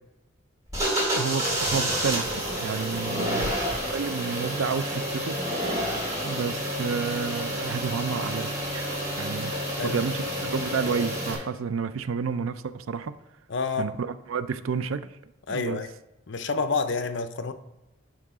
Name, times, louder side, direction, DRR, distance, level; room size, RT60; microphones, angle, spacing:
sound 1, 0.7-11.3, equal, 15° right, 2.4 m, -29 dB
voice 1, 1.1-3.6 3.9-5.4 6.2-13.2 13.8-15.1 15.5-15.8, right 6 dB, 90° right, 0.4 m, -30 dB
voice 2, 3.1-3.5 9.8-10.0 13.5-13.9 15.5-15.9 16.3-17.5, left 4 dB, 65° left, 0.6 m, -29 dB
11.0 x 3.8 x 4.8 m
head